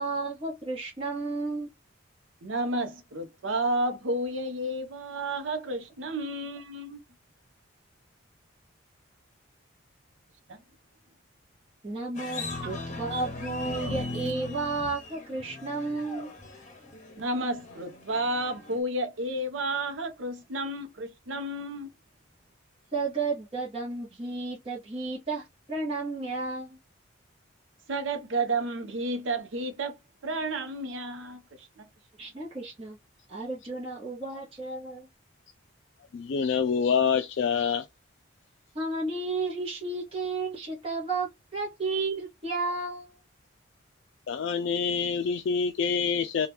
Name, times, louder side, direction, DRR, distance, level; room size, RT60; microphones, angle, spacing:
voice 1, 0.0-1.7 11.8-16.3 22.9-26.8 32.2-33.0 33.3-35.1 38.7-43.1, right 3 dB, 30° right, 0.9 m, -32 dB
voice 2, 2.4-7.0 10.5-10.6 17.2-21.9 27.9-29.9 30.2-31.9, right 1 dB, 70° right, 0.7 m, -31 dB
sound 1, 12.1-18.8, left 2 dB, 35° left, 0.8 m, -38 dB
voice 3, 36.1-37.9 44.3-46.5, left 6 dB, 60° left, 0.3 m, -26 dB
2.9 x 2.3 x 3.4 m
head